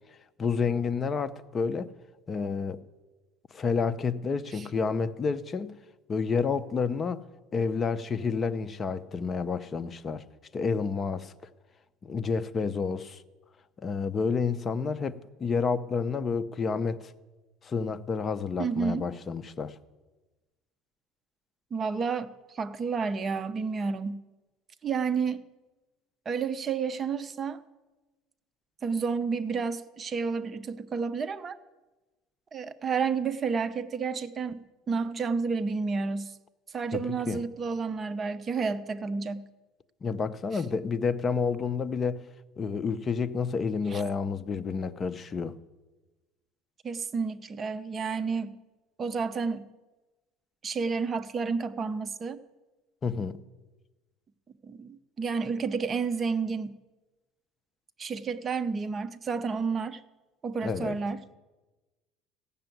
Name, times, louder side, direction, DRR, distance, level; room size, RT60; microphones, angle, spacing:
voice 1, 0.4-1.9 2.3-2.8 3.5-5.7 6.1-7.2 7.5-10.2 10.5-11.3 12.0-13.2 13.8-17.1 17.6-19.7 36.9-37.4 40.0-42.2 42.6-45.5 53.0-53.4 60.6-61.0, left 5 dB, 30° left, 0.6 m, -29 dB
voice 2, 18.6-19.1 21.7-24.2 24.8-25.4 26.3-27.6 28.8-31.6 32.5-36.3 36.7-39.5 43.9-44.0 46.8-48.6 49.0-49.7 50.6-52.4 54.6-56.8 58.0-60.0 60.4-61.2, right 5 dB, 30° right, 0.7 m, -30 dB
15.0 x 6.9 x 9.1 m
cardioid pair, 125°, 0 cm